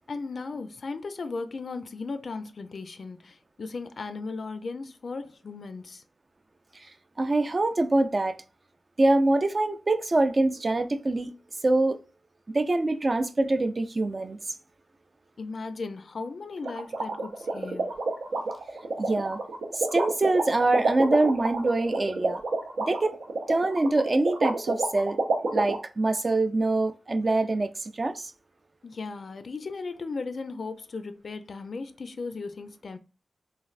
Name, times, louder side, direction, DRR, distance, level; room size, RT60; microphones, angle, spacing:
voice 1, 0.1-6.0 15.4-18.0 28.8-33.0, left 4 dB, 65° left, 0.3 m, -36 dB
voice 2, 7.2-8.4 9.0-11.3 11.6-12.0 12.5-14.6 19.0-19.4 19.7-22.4 22.9-23.2 23.5-25.2 25.5-28.3, right 2 dB, 40° right, 0.3 m, -24 dB
sound 1, 16.6-25.8, right 3 dB, 90° right, 0.6 m, -28 dB
3.1 x 2.5 x 2.4 m
cardioid pair, 65°, 0 cm